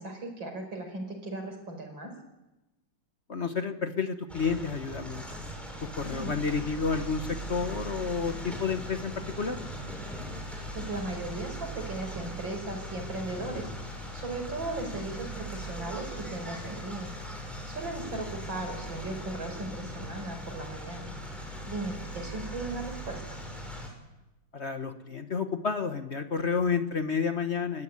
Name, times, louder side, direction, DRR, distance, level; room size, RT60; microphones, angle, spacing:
voice 1, 0.0-2.1 6.0-6.4 10.8-13.7 14.1-17.1 17.7-21.1 21.7-23.4, right 2 dB, 85° right, 4 dB, 5.9 m, -37 dB
voice 2, 3.3-5.2 5.8-9.6 24.5-27.8, left 5 dB, 40° left, 7 dB, 1.3 m, -30 dB
sound 1, 4.3-23.9, right 1 dB, ahead, 6.4 m, -39 dB
29.5 x 15.0 x 9.8 m, 1.0 s
omnidirectional pair, 2.0 m